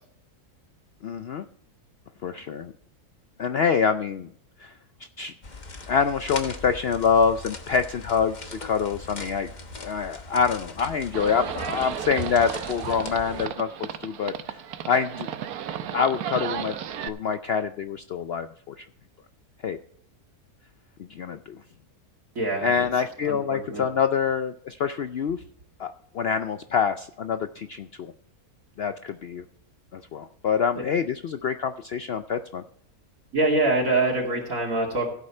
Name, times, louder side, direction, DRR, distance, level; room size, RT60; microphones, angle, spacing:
voice 1, 1.0-1.4 2.2-2.7 3.4-4.3 4.6-4.7 5.2-5.3 5.9-9.5 9.8-14.6 14.9-15.3 15.9-16.7 17.0-18.8 19.6-19.8 21.1-21.6 22.6-25.4 25.8-28.1 28.8-29.4 29.9-32.6, left 6 dB, 75° left, 10 dB, 0.5 m, -26 dB
sound 1, 5.4-13.5, left 2 dB, 30° left, 1.1 m, -40 dB
Livestock farm animals working animals, 11.1-17.1, right 9 dB, 80° right, 1.3 m, -34 dB
voice 2, 22.3-23.8 30.8-30.9 33.3-35.1, right 2 dB, 60° right, -2 dB, 2.9 m, -25 dB
16.0 x 8.3 x 4.3 m, 0.68 s
omnidirectional pair, 1.6 m